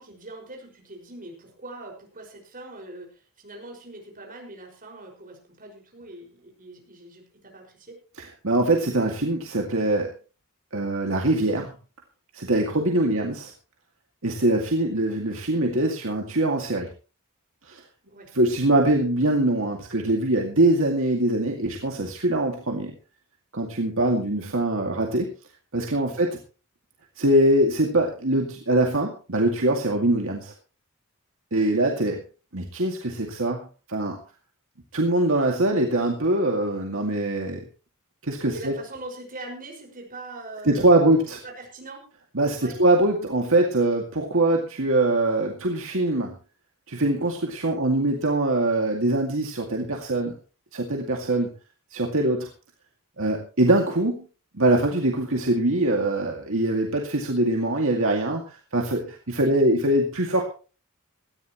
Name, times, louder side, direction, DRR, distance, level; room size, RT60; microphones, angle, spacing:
voice 1, 0.0-8.0 12.7-13.1 18.1-18.3 26.1-26.3 38.5-42.0 42.6-42.8 52.1-52.3 59.3-59.5, right 2 dB, 40° right, 1 dB, 5.7 m, -42 dB
voice 2, 8.4-10.1 10.7-11.7 12.3-13.5 14.2-16.9 17.6-17.8 18.3-22.9 23.5-25.3 25.7-26.3 27.2-30.5 31.5-32.2 32.5-34.2 34.9-37.6 38.2-38.7 40.7-41.4 42.3-46.4 46.9-50.4 50.7-51.5 51.9-52.5 53.2-54.3 54.5-60.4, right 1 dB, 65° right, 1 dB, 2.2 m, -23 dB
18.5 x 14.0 x 3.1 m, 0.34 s
head